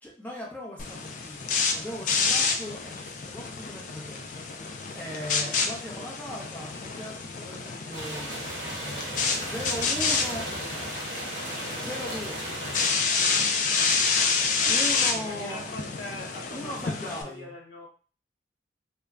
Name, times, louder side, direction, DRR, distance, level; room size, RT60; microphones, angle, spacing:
voice 1, 0.0-4.2 4.9-8.4 8.8-10.5 11.7-12.4 13.2-13.6 14.6-15.7 16.5-17.5, left 1 dB, 10° left, -4 dB, 0.7 m, -39 dB
sound 1, 0.8-17.2, left 5 dB, 45° left, 0.3 m, -29 dB
sound 2, 7.9-12.9, right 1 dB, 40° right, 0.9 m, -36 dB
voice 2, 15.1-17.0 17.2-17.9, left 1 dB, 80° left, -1 dB, 0.8 m, -41 dB
2.2 x 2.1 x 3.5 m, 0.39 s
head